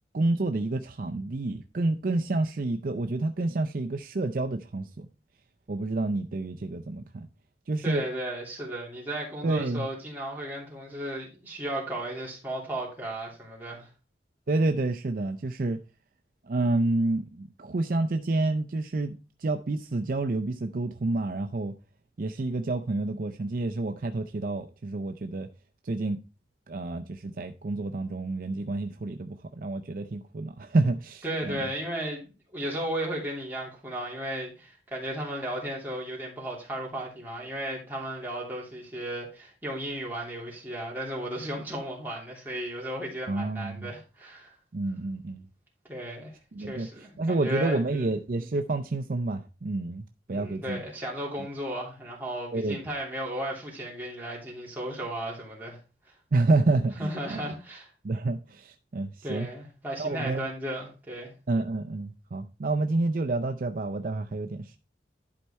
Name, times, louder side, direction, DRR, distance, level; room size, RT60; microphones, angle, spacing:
voice 1, 0.1-5.1 5.7-7.3 7.7-8.0 9.4-9.9 14.5-15.8 16.5-21.7 22.2-25.5 25.8-26.2 26.7-31.6 43.3-43.9 44.7-45.4 46.5-46.9 47.2-50.8 52.5-52.8 56.3-57.5 58.0-59.5 60.0-60.5 61.5-64.8, right 2 dB, 50° right, 0.5 m, -29 dB
voice 2, 7.8-13.9 31.2-44.5 45.9-46.3 46.6-48.1 50.3-55.8 57.0-57.9 59.2-61.3, right 1 dB, 10° right, 2.9 m, -35 dB
11.5 x 4.6 x 4.2 m
head